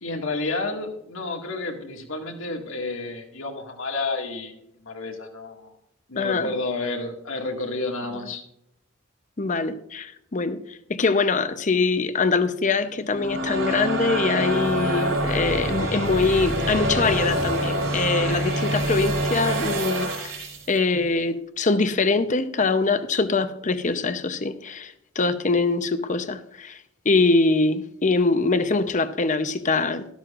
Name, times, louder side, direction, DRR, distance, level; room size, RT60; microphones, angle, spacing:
voice 1, 0.0-4.5 4.9-5.7 6.1-8.4, left 3 dB, 85° left, 2.0 m, -30 dB
voice 2, 6.2-6.5 9.4-20.4 20.7-26.8 27.0-30.1, left 3 dB, 40° left, 0.7 m, -23 dB
sound 1, 12.9-20.7, equal, 70° right, 4.0 m, -26 dB
13.0 x 12.5 x 2.5 m
head